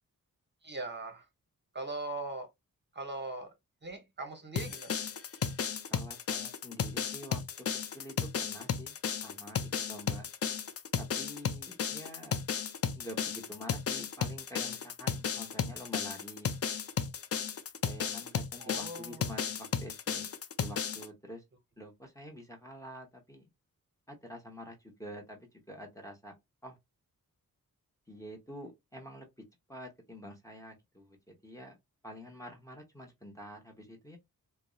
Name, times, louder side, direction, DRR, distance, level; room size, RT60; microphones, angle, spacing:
voice 1, 0.6-1.2 1.7-2.5 2.9-3.5 3.8-5.0 18.6-19.3, right 2 dB, 30° right, 0.8 m, -40 dB
sound 1, 4.6-21.1, left 7 dB, 45° left, 0.4 m, -34 dB
voice 2, 5.9-7.4 7.9-8.9 9.2-9.6 9.9-10.3 11.0-12.4 13.0-16.5 17.8-20.3 20.6-21.4 21.8-23.5 24.1-26.3 26.6-26.8 28.1-29.3 29.7-31.8 32.0-34.2, equal, 10° left, 0.8 m, -47 dB
2.6 x 2.1 x 2.3 m
cardioid pair, 60°, 35 cm